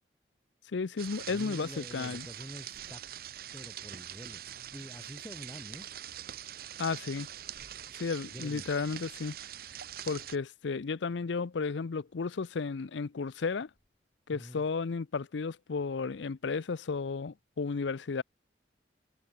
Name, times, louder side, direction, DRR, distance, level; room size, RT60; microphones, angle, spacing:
voice 1, 0.7-2.3 6.8-7.3 8.0-9.4 10.1-13.7 14.3-18.2, left 4 dB, 80° left, 0.5 m, -33 dB
sound 1, 1.0-10.4, right 11 dB, 55° right, 0.7 m, -44 dB
voice 2, 1.3-3.0 3.5-4.4 4.7-5.9 8.2-8.7 14.3-14.6, equal, 15° left, 4.3 m, -46 dB
head